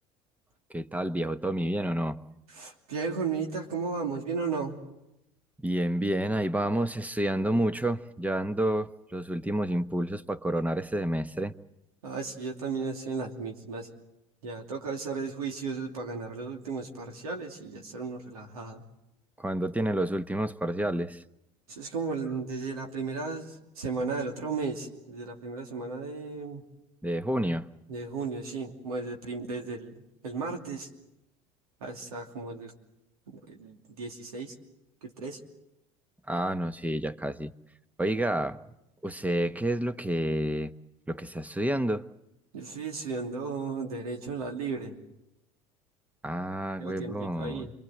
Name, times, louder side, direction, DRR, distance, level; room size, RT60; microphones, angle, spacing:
voice 1, 0.7-2.2 5.6-11.5 19.4-21.2 27.0-27.7 36.3-37.5 38.0-38.6 39.0-40.7 41.1-42.1 46.2-47.7, right 1 dB, 10° right, 1.1 m, -29 dB
voice 2, 2.6-4.8 12.0-13.9 14.4-18.8 21.7-23.5 23.8-26.6 27.9-29.9 30.2-30.9 31.8-32.7 33.3-34.5 35.0-35.4 42.5-44.9 46.8-47.7, right 4 dB, 85° right, 2.9 m, -35 dB
27.5 x 22.5 x 7.8 m
hypercardioid pair, 75°, 18 cm